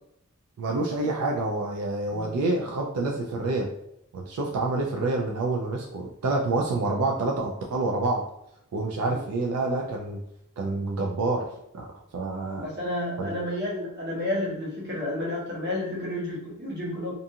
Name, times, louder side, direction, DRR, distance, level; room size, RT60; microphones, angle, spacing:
voice 1, 0.6-3.7 4.1-8.2 8.7-10.2 10.6-11.5 11.7-11.9 12.1-12.6 13.2-13.3, right 2 dB, 90° right, 0 dB, 0.4 m, -27 dB
voice 2, 12.5-17.1, left 1 dB, 50° right, -5 dB, 1.0 m, -31 dB
2.5 x 2.3 x 2.7 m, 0.79 s
head